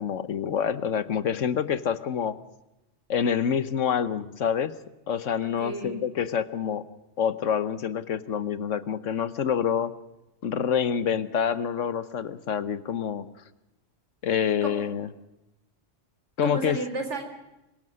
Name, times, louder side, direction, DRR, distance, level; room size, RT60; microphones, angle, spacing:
voice 1, 0.0-2.4 3.1-4.8 5.1-6.9 7.2-9.9 10.4-13.3 14.2-15.1 16.4-16.8, left 8 dB, 80° left, 14 dB, 1.4 m, -27 dB
voice 2, 5.4-6.1 14.6-14.7 16.4-17.2, right 2 dB, 70° right, 6 dB, 3.9 m, -33 dB
24.5 x 16.5 x 6.4 m, 0.94 s
omnidirectional pair, 1.3 m